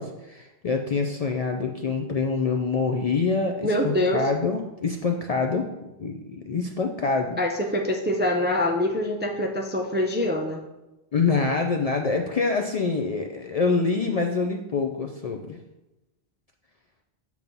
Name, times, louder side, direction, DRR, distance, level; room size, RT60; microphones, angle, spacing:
voice 1, 0.0-5.7 6.0-7.4 11.1-15.6, left 4 dB, 50° left, 3 dB, 0.5 m, -25 dB
voice 2, 3.6-4.2 7.4-10.6, left 1 dB, 15° right, 2 dB, 0.4 m, -24 dB
7.1 x 3.1 x 5.3 m, 0.99 s
omnidirectional pair, 1.0 m